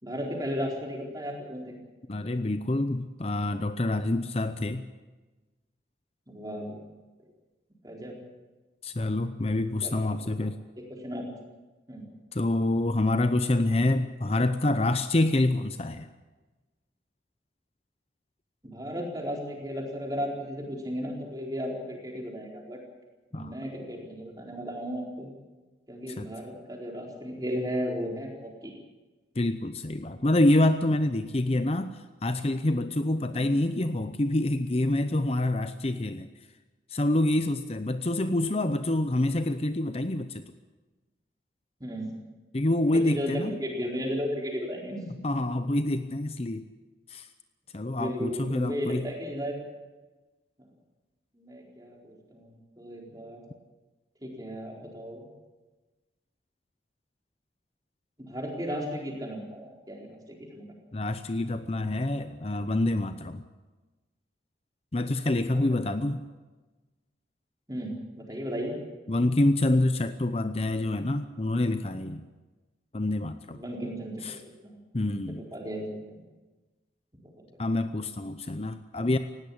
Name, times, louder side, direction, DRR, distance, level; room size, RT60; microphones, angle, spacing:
voice 1, 0.0-1.8 6.3-6.8 7.8-8.1 9.8-10.5 10.8-11.2 11.9-12.1 18.6-22.8 23.3-25.3 25.9-28.7 33.3-33.4 41.8-42.1 42.9-45.3 47.9-49.6 51.3-53.4 54.2-55.2 58.2-60.7 65.5-66.0 67.7-68.8 73.5-74.8 75.4-76.0 77.4-77.5, equal, 20° right, 0 dB, 4.3 m, -35 dB
voice 2, 2.1-4.8 8.8-10.6 12.3-16.1 23.3-23.6 26.2-26.3 29.4-36.3 36.9-40.4 42.5-43.6 45.2-46.7 47.1-47.3 47.7-49.1 60.9-63.4 64.9-66.2 69.1-72.2 72.9-73.6 74.2-74.4 74.9-75.5 77.6-79.2, left 1 dB, 35° left, 10 dB, 0.7 m, -27 dB
19.0 x 16.5 x 8.7 m, 1.2 s
head